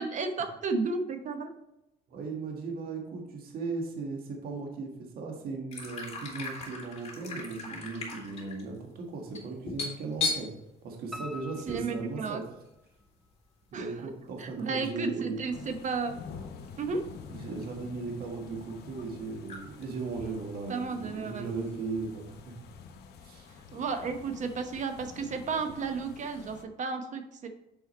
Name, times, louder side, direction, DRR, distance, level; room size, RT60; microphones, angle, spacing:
voice 1, 0.0-1.5 11.7-12.4 13.7-13.9 14.4-16.1 16.8-17.0 20.7-21.5 23.7-27.5, right 4 dB, 45° right, 7 dB, 1.0 m, -33 dB
voice 2, 2.1-10.5 10.8-12.4 13.7-15.4 17.3-22.5 23.2-23.5, right 4 dB, 60° right, 1 dB, 1.5 m, -37 dB
sound 1, 5.7-11.9 12.1-12.3 12.6-13.0 13.9-14.0 15.4-15.6 16.6-16.7 16.9-17.8 18.2-18.3 19.1-19.2 19.4-19.8 20.1-22.3, left 4 dB, 40° left, 2.6 m, -38 dB
Piano, 11.1-13.0 13.5-14.3 14.6-14.7 15.2-15.3 15.5-15.6, left 2 dB, ahead, 0.6 m, -46 dB
sound 2, 15.5-26.6, left 6 dB, 75° left, 1.0 m, -48 dB
7.4 x 4.7 x 4.2 m, 0.86 s
cardioid pair, 110°, 17 cm